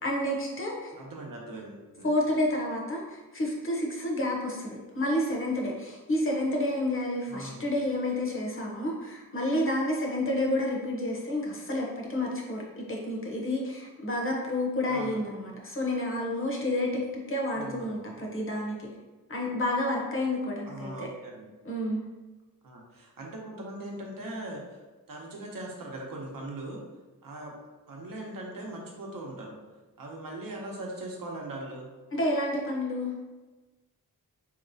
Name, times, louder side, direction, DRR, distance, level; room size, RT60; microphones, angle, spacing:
voice 1, 0.0-0.9 2.0-18.9 19.3-21.1 21.6-22.0 32.1-33.1, left 1 dB, 35° left, -1 dB, 0.8 m, -30 dB
voice 2, 0.9-2.1 7.3-7.7 14.9-15.2 17.5-18.1 20.6-21.5 22.6-24.8 25.1-26.8 27.2-27.6 27.9-29.6 30.0-31.9, right 1 dB, 70° right, -1 dB, 0.8 m, -40 dB
4.0 x 2.9 x 2.6 m, 1.2 s
wide cardioid pair, 130°, 35 cm